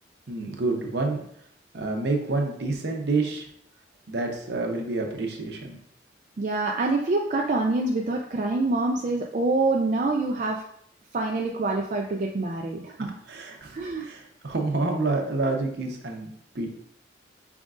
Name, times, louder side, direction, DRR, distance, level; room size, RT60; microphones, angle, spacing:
voice 1, 0.3-1.2 1.7-3.5 4.1-5.8 13.3-16.8, right 3 dB, 65° right, 2 dB, 0.8 m, -28 dB
voice 2, 6.4-10.6 11.1-13.1 13.7-14.1, right 2 dB, 40° right, 0 dB, 0.3 m, -26 dB
5.0 x 3.6 x 2.5 m, 0.68 s
head